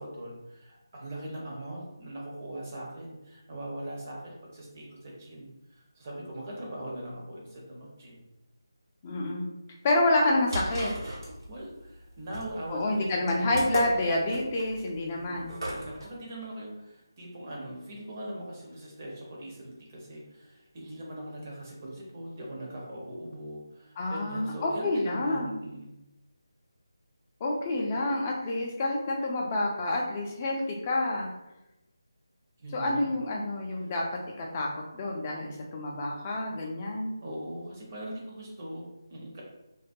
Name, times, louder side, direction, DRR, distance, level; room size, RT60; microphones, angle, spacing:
voice 1, 0.0-8.2 11.5-13.5 15.1-26.1 32.6-33.1 33.8-33.9 37.2-39.4, right 1 dB, 35° right, -3 dB, 0.7 m, -41 dB
voice 2, 9.0-9.5 9.8-10.9 12.7-15.5 24.0-25.5 27.4-31.3 32.7-34.0 34.4-37.1, left 2 dB, 25° left, -1 dB, 0.4 m, -28 dB
sound 1, 10.1-16.0, right 1 dB, 75° right, 0.9 m, -36 dB
2.2 x 2.1 x 2.6 m, 0.92 s
figure-of-eight pair, 160°, 2 cm